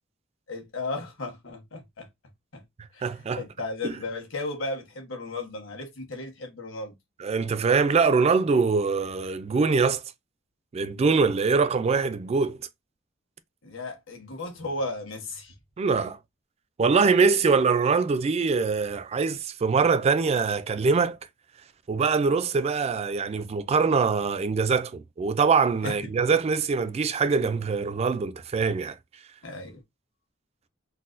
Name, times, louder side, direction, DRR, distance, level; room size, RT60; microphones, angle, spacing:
voice 1, 0.5-2.1 2.5-2.6 2.9-6.9 13.6-15.5 25.8-25.9 29.4-29.8, left 2 dB, 80° left, 1.3 m, -35 dB
voice 2, 3.0-3.4 7.2-10.0 10.7-12.6 15.8-16.2 16.8-21.2 21.9-28.9, right 5 dB, 30° right, 0.3 m, -23 dB
3.9 x 2.1 x 2.5 m
head